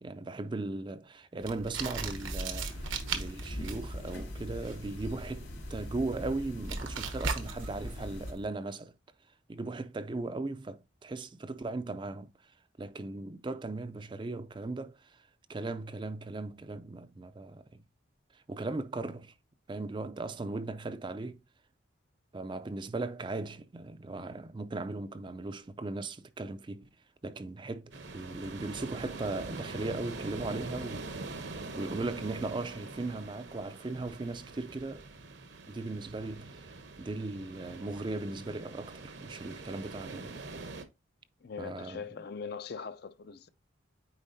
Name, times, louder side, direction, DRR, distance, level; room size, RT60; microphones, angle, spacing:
voice 1, 0.0-8.9 9.5-17.8 18.3-19.3 19.7-21.4 22.3-26.9 27.2-35.0 35.7-40.4 41.6-42.0, right 2 dB, 25° right, 0.4 m, -38 dB
sound 1, 1.4-8.5, right 4 dB, 85° right, 1.1 m, -39 dB
sound 2, 2.0-8.3, equal, 75° left, 3.0 m, -42 dB
sound 3, 27.9-40.8, right 3 dB, 65° right, 0.9 m, -44 dB
voice 2, 41.4-43.5, left 5 dB, 50° left, 0.4 m, -41 dB
9.0 x 4.1 x 2.6 m
head